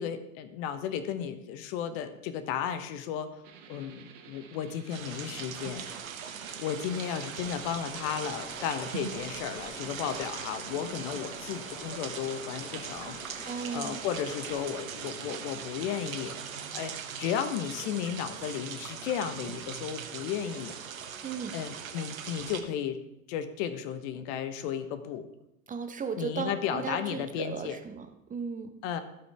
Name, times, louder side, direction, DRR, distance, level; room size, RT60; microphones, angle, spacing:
voice 1, 0.0-3.4 3.7-5.9 6.6-13.2 13.5-16.9 17.2-20.8 21.5-23.0 23.3-25.3 26.2-27.8 28.8-29.0, left 8 dB, 55° left, 11 dB, 1.0 m, -34 dB
sound 1, 3.4-16.3, right 7 dB, 50° right, 1.8 m, -53 dB
sound 2, 4.9-22.6, right 7 dB, 80° right, 1.2 m, -40 dB
Stream, 7.4-14.6, left 4 dB, 15° left, 0.9 m, -49 dB
voice 2, 13.4-14.0 21.2-21.6 25.7-28.8, right 5 dB, 20° right, 7 dB, 0.8 m, -36 dB
16.0 x 5.7 x 3.4 m, 0.86 s
hypercardioid pair, 90°, 41 cm